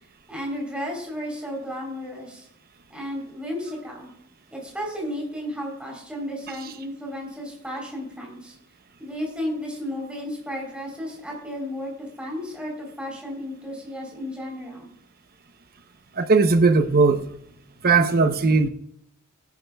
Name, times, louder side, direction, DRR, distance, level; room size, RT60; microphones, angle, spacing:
voice 1, 0.3-2.5 2.9-4.1 4.5-8.5 9.0-11.9 12.2-14.9, equal, 5° right, 3.7 m, -33 dB
voice 2, 16.1-17.3 17.8-18.7, right 4 dB, 45° right, 0.8 m, -18 dB
16.5 x 10.5 x 2.3 m
head